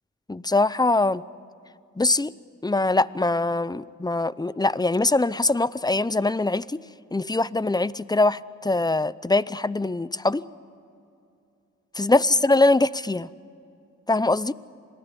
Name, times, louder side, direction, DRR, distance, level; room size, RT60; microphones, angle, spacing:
voice 1, 0.3-1.2 2.0-2.3 2.6-6.8 7.1-10.4 11.9-13.3 14.1-14.5, left 2 dB, 15° left, 18 dB, 0.6 m, -22 dB
27.5 x 19.0 x 9.8 m, 2.6 s
cardioid pair, 60°, 31 cm